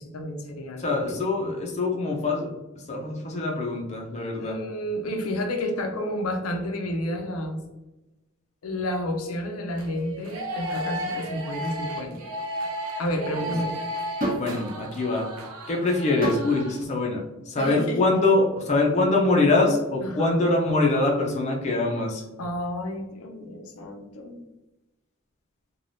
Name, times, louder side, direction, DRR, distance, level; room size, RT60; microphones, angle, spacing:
voice 1, 0.0-1.2 4.4-7.6 8.6-12.2 13.0-13.8 17.6-18.0 20.0-20.4 22.4-24.4, equal, 90° left, 3 dB, 0.5 m, -30 dB
voice 2, 0.8-2.5 2.9-4.6 14.4-15.3 15.7-22.2, left 2 dB, 30° left, -1 dB, 0.4 m, -24 dB
sound 1, 9.7-16.8, equal, 85° right, 0.4 m, -34 dB
sound 2, 14.2-14.6 16.2-16.5 17.6-17.8, right 1 dB, 40° right, 1.0 m, -28 dB
3.2 x 2.2 x 2.6 m, 1.0 s
head